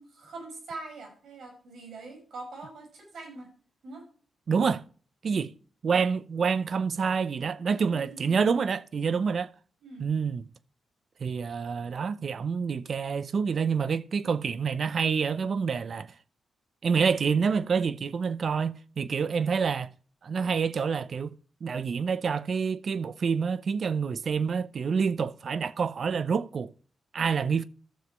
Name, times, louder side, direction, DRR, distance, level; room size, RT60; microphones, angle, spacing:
voice 1, 0.0-3.5 3.8-4.0 7.9-8.5 9.8-10.1, right 3 dB, 75° right, 6.1 m, -43 dB
voice 2, 4.5-4.8 5.2-5.5 5.8-9.5 10.0-10.4 11.2-16.1 16.8-19.9 20.2-21.3 21.6-26.7 27.1-27.7, right 6 dB, 60° right, 0.7 m, -27 dB
14.0 x 7.2 x 3.1 m
cardioid pair, 70°, 0 cm